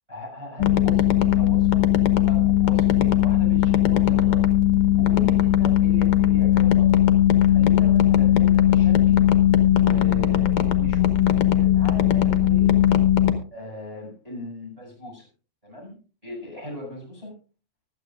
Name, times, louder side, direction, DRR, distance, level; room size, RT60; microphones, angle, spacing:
voice 1, 0.1-1.8 2.2-4.5 5.0-6.9 7.5-9.2 9.8-12.8 13.5-15.3 15.6-16.0 16.2-17.3, left 1 dB, 10° right, 2 dB, 7.1 m, -37 dB
sound 1, 0.6-13.3, left 12 dB, 60° left, 1.6 m, -18 dB
24.5 x 9.0 x 2.5 m, 0.37 s
omnidirectional pair, 3.4 m